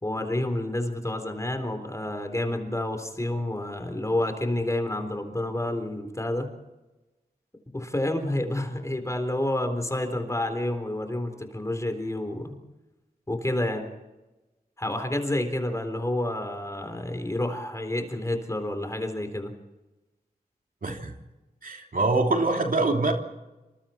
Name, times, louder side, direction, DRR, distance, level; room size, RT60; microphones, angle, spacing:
voice 1, 0.0-6.5 7.7-12.5 13.3-13.9 14.8-19.5, left 1 dB, 20° left, 6 dB, 3.9 m, -29 dB
voice 2, 20.8-21.1 21.6-23.1, right 3 dB, 60° right, 2 dB, 3.1 m, -24 dB
27.5 x 25.5 x 4.5 m, 1.0 s
wide cardioid pair, 105°, 16 cm